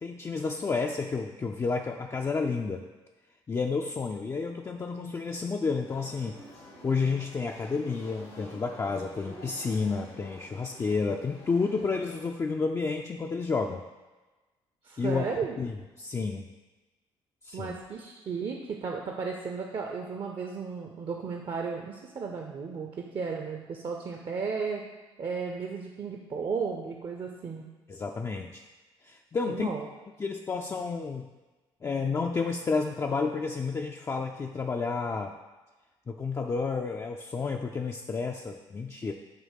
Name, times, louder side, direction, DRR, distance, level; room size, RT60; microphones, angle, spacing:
voice 1, 0.0-2.8 3.5-6.3 6.8-13.8 15.0-15.3 15.6-16.4 17.4-17.7 27.9-28.6 29.0-29.7 30.2-31.3 31.8-35.3 36.1-39.1, left 4 dB, 20° left, 1 dB, 0.4 m, -30 dB
sound 1, 5.8-12.3, left 1 dB, 85° left, 1.6 m, -49 dB
voice 2, 14.8-15.6 17.5-24.8 25.2-27.6 29.5-29.9, right 5 dB, 35° right, 2 dB, 0.7 m, -34 dB
7.4 x 2.8 x 5.6 m, 1.2 s
figure-of-eight pair, 50°, 14 cm